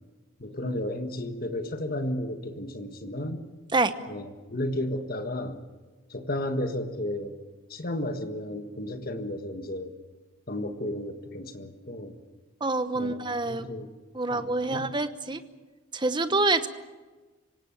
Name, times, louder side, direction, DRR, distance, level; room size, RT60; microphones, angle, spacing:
voice 1, 0.4-3.4 4.1-5.6 6.1-7.4 7.7-9.9 10.5-12.2 12.9-13.9 14.3-14.9, left 1 dB, 45° left, 6 dB, 1.6 m, -33 dB
voice 2, 12.6-13.7 14.1-15.4 15.9-16.7, right 2 dB, 20° right, 10 dB, 1.0 m, -26 dB
26.0 x 17.5 x 7.4 m, 1.3 s
head